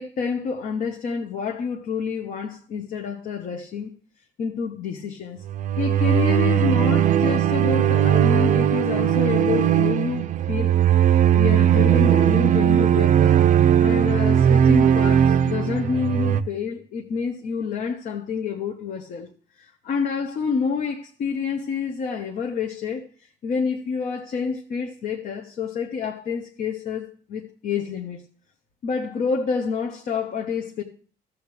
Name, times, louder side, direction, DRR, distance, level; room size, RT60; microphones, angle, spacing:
voice 1, 0.0-3.9 4.4-5.4 5.8-10.7 11.3-13.4 13.8-19.3 19.6-23.1 23.4-28.2 28.8-30.8, left 6 dB, 55° left, 1.1 m, -28 dB
sound 1, 5.4-16.4, right 10 dB, 50° right, 0.5 m, -18 dB
13.5 x 7.1 x 3.3 m
cardioid pair, 110°, 17 cm